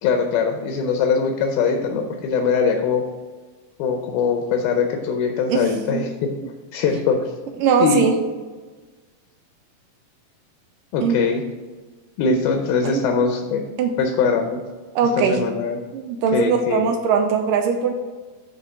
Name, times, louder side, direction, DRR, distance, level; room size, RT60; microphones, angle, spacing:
voice 1, 0.0-3.0 3.8-6.3 6.7-7.3 7.8-8.0 10.9-11.4 12.2-13.6 14.0-14.6 15.2-15.8 16.3-16.8, left 5 dB, 80° left, 4 dB, 2.5 m, -21 dB
voice 2, 5.5-6.1 7.6-8.2 11.0-11.2 12.8-13.1 13.8-14.0 15.0-15.4 15.9-17.9, right 5 dB, 80° right, 4 dB, 1.9 m, -20 dB
9.4 x 3.2 x 6.6 m, 1.3 s
omnidirectional pair, 4.3 m